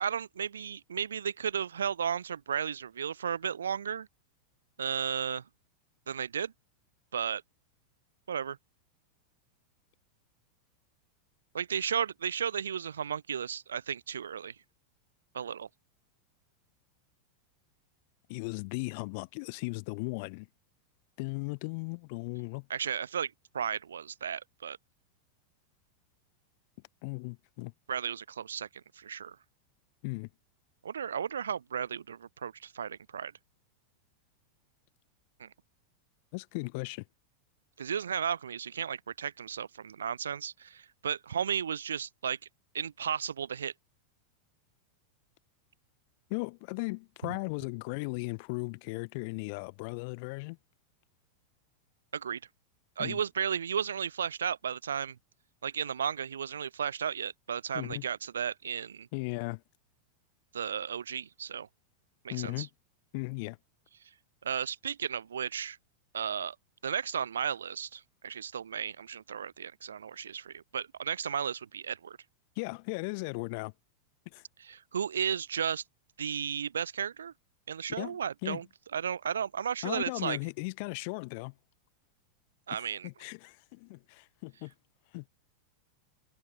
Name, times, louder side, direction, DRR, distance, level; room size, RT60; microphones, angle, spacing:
voice 1, 0.0-4.1 4.8-5.4 6.1-6.5 7.1-7.4 8.3-8.6 11.5-14.5 15.3-15.7 22.7-24.8 27.9-28.7 29.0-29.4 30.8-33.3 35.4-35.5 37.8-42.4 42.7-43.7 52.1-52.4 53.0-55.2 55.6-59.1 60.5-61.7 62.2-62.7 64.4-65.8 66.1-66.6 66.8-72.2 74.6-75.8 76.2-77.3 77.7-78.7 78.9-80.4 82.7-83.1, right 8 dB, 70° right, 0.4 m, -34 dB
voice 2, 18.3-20.5 21.2-22.7 27.0-27.7 30.0-30.3 36.3-37.0 46.3-50.6 53.0-53.2 57.7-58.1 59.1-59.6 62.3-62.7 63.1-63.6 72.6-73.7 74.2-74.4 78.0-78.6 79.8-81.5 82.7-84.7 85.1-85.2, left 30 dB, 45° left, 1.2 m, -37 dB
figure-of-eight pair, 90°, 0 cm